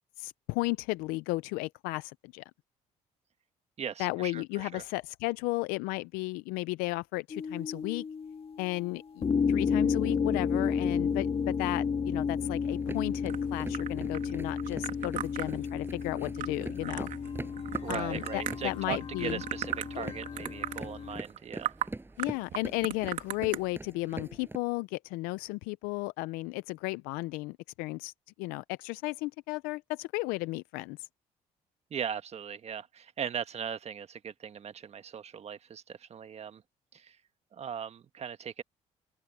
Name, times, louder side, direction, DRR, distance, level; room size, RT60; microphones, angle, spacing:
voice 1, 0.2-2.4 4.0-8.0 8.6-17.1 17.9-19.4 19.9-20.1 22.2-28.1 28.4-31.1, left 22 dB, 90° left, 0.5 m, -34 dB
voice 2, 3.8-4.8 17.8-21.7 31.9-36.6 36.9-37.2 37.5-38.6, right 7 dB, 45° right, 1.5 m, -39 dB
sound 1, 7.3-8.9 9.2-21.2, left 6 dB, 40° left, 1.9 m, -32 dB
sound 2, 12.6-24.6, right 2 dB, 15° right, 7.1 m, -44 dB
sound 3, 13.3-18.8 19.2-20.0 20.2-20.8 21.2-21.4 21.6-21.9 22.2-23.6, right 11 dB, 70° right, 2.7 m, -37 dB
open air
supercardioid pair, 70°, 15 cm